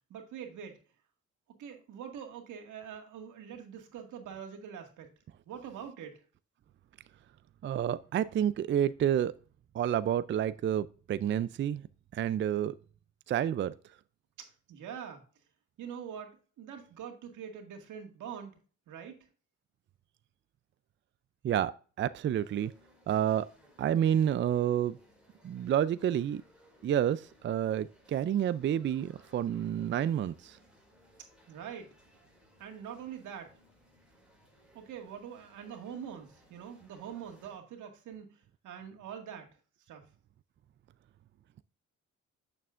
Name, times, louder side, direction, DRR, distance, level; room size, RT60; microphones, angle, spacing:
voice 1, 0.1-0.8 1.6-5.1 5.5-6.2 14.4-15.2 15.8-18.5 18.9-19.2 31.5-31.9 32.6-33.5 34.7-39.6 39.9-40.1, right 8 dB, 80° right, 2.0 m, -44 dB
voice 2, 7.6-9.3 9.7-11.8 12.1-12.7 13.3-13.7 21.4-21.7 22.0-22.7 23.1-23.5 23.8-25.0 25.4-26.4 26.8-30.6, right 10 dB, 40° right, 0.4 m, -29 dB
sound 1, 22.3-37.6, equal, 5° right, 4.4 m, -63 dB
8.4 x 6.9 x 2.5 m
cardioid pair, 90°, 30 cm